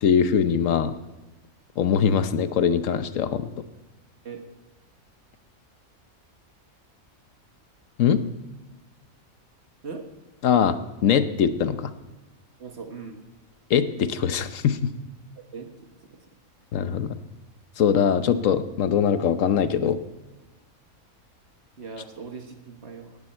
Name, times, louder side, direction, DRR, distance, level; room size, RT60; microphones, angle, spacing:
voice 1, 0.0-0.9 1.8-3.5 8.0-8.2 10.4-11.9 13.7-14.9 16.7-17.1 17.8-20.0, left 7 dB, 70° left, 11 dB, 1.1 m, -22 dB
voice 2, 12.6-13.2 15.5-15.9 21.8-23.2, right 5 dB, 50° right, 4 dB, 1.7 m, -39 dB
17.5 x 13.0 x 4.4 m, 1.1 s
omnidirectional pair, 1.5 m